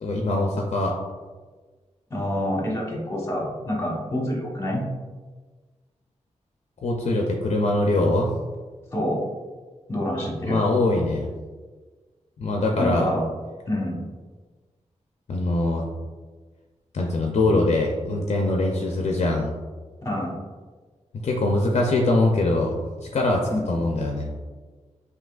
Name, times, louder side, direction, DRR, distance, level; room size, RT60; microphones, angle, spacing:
voice 1, 0.0-0.9 6.8-8.3 10.4-11.3 12.4-13.1 15.3-15.9 16.9-19.5 21.2-22.8 23.1-24.3, left 2 dB, 60° left, 0 dB, 0.5 m, -22 dB
voice 2, 2.1-4.8 8.9-9.2 9.9-10.6 12.8-13.2 13.7-14.0 20.0-20.4 23.5-23.8, equal, 20° left, -3 dB, 1.1 m, -27 dB
5.8 x 2.8 x 2.4 m, 1.4 s
wide cardioid pair, 130°, 13 cm